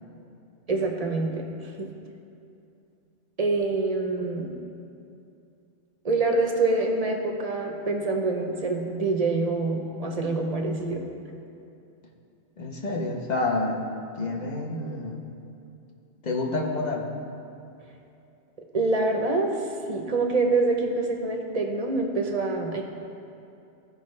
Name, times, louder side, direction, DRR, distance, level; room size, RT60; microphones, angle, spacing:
voice 1, 0.7-1.9 3.4-4.5 6.0-11.0 18.7-22.8, right 3 dB, 40° right, 2 dB, 0.7 m, -26 dB
voice 2, 12.6-13.9 14.2-15.2 16.2-17.1, left 2 dB, 40° left, 0 dB, 0.9 m, -28 dB
15.0 x 5.1 x 3.2 m, 2.7 s
omnidirectional pair, 1.2 m